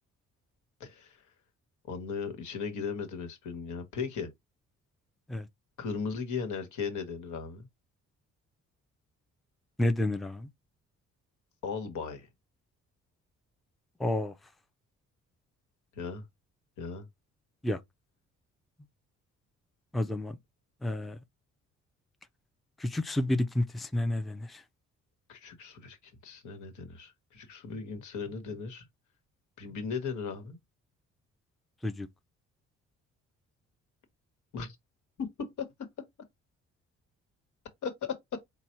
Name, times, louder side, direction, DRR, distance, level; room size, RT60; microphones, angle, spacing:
voice 1, 0.8-1.2 1.9-4.3 5.8-7.7 11.6-12.3 16.0-16.2 16.8-17.1 25.3-26.0 26.2-28.8 29.6-30.6 34.5-34.7 35.2-35.7 37.8-38.1, left 5 dB, 75° left, 1.3 m, -37 dB
voice 2, 9.8-10.5 14.0-14.3 17.6-17.8 19.9-20.4 20.8-21.2 22.8-24.6 31.8-32.1, left 1 dB, ahead, 0.5 m, -30 dB
4.0 x 2.2 x 4.4 m
cardioid pair, 90°, 30 cm